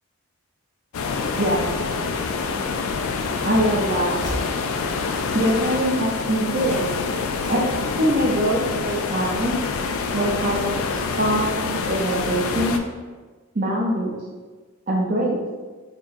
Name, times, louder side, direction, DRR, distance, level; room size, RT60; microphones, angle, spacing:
sound 1, 0.9-12.8, left 4 dB, 75° left, 0.3 m, -26 dB
voice 1, 3.4-4.1 5.3-6.9 7.5-7.6 8.0-9.6 10.1-12.8 13.5-14.2 14.9-15.4, right 1 dB, 40° right, -2 dB, 0.5 m, -23 dB
Train / Slam, 3.8-6.4 6.6-6.9 7.2-8.4 8.8-9.2, equal, 10° left, 1.0 m, -39 dB
4.4 x 2.9 x 2.5 m, 1.4 s
head